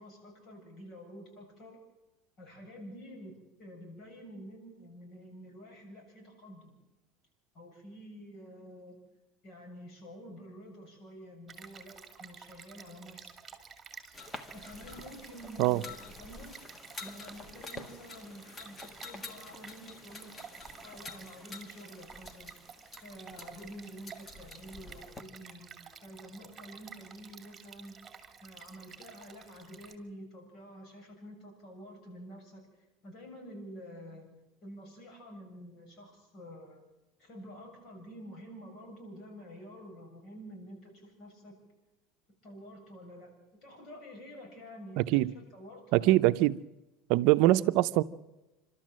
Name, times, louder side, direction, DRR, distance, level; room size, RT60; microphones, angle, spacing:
voice 1, 0.0-1.8 2.4-6.8 7.5-9.0 9.4-13.4 14.5-15.9 16.2-16.5 17.0-20.3 20.8-22.5 23.0-32.7 33.0-34.3 34.6-36.8 37.2-41.6 42.4-43.3 43.6-46.2, equal, 50° left, 7.2 m, -49 dB
Stream, 11.5-29.9, right 6 dB, 20° right, 2.4 m, -52 dB
sound 1, 14.1-25.2, left 3 dB, 25° left, 1.5 m, -48 dB
voice 2, 45.0-45.3 45.9-46.6 47.1-48.0, right 17 dB, 65° right, 0.7 m, -23 dB
27.5 x 13.0 x 7.5 m
supercardioid pair, 125°, 0 cm